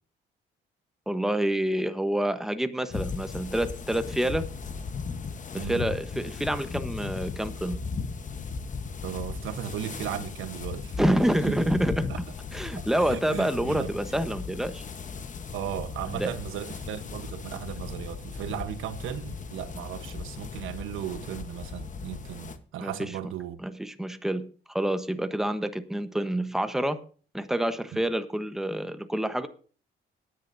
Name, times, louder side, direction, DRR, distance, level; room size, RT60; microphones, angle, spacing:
voice 1, 1.1-4.5 5.5-7.8 11.0-12.1 12.5-14.8 16.1-16.3 22.8-23.1 23.6-27.0 27.3-29.5, right 1 dB, ahead, 1.1 m, -28 dB
sound 1, 2.9-22.6, left 5 dB, 40° left, 1.1 m, -37 dB
voice 2, 5.6-5.9 9.0-11.1 11.5-11.7 12.1-12.2 12.8-13.9 15.5-23.6, right 11 dB, 85° right, 1.1 m, -36 dB
18.5 x 10.0 x 2.7 m
cardioid pair, 90°, 20 cm